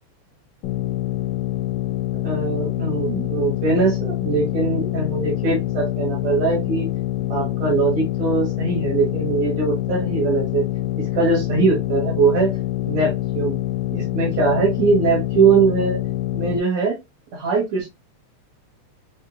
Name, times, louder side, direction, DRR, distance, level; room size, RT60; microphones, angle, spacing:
sound 1, 0.6-16.6, left 15 dB, 75° left, 1.6 m, -25 dB
voice 1, 2.2-6.9 7.3-10.7 11.0-12.5 12.9-13.6 13.9-16.0 16.3-17.0 17.3-17.9, right 4 dB, 65° right, -5 dB, 2.7 m, -21 dB
6.3 x 2.7 x 2.3 m, 0.22 s
omnidirectional pair, 3.3 m